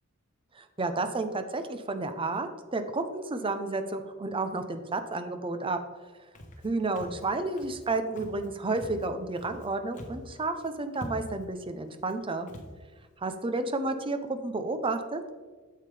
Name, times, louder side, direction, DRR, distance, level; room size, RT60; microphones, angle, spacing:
voice 1, 0.6-5.8 6.6-12.5 13.2-15.2, right 3 dB, 25° right, 9 dB, 0.6 m, -31 dB
Walk footsteps, 6.3-6.7 7.0-7.3 7.6-7.9 8.2-8.5 8.7-9.7 9.9-10.3 10.6-10.7 10.9-11.5 12.0-12.1 12.5-12.7, equal, 40° left, 1.1 m, -43 dB
8.8 x 7.6 x 3.3 m, 1.4 s
head